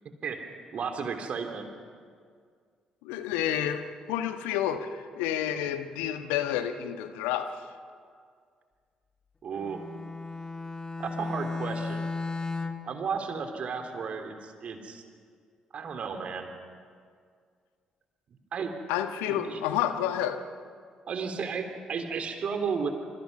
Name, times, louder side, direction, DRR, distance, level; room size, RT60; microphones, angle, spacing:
voice 1, 0.7-1.7 9.4-9.8 11.0-12.1 12.8-15.0 15.7-16.5 18.5-18.7 19.3-19.6 21.1-22.9, right 5 dB, 50° right, 5 dB, 3.3 m, -33 dB
voice 2, 3.0-7.6 18.9-20.4, left 10 dB, 70° left, 9 dB, 1.4 m, -30 dB
Bowed string instrument, 9.6-13.0, left 3 dB, 25° left, 2.1 m, -35 dB
28.0 x 27.5 x 6.2 m, 2.1 s
figure-of-eight pair, 45°, 3 cm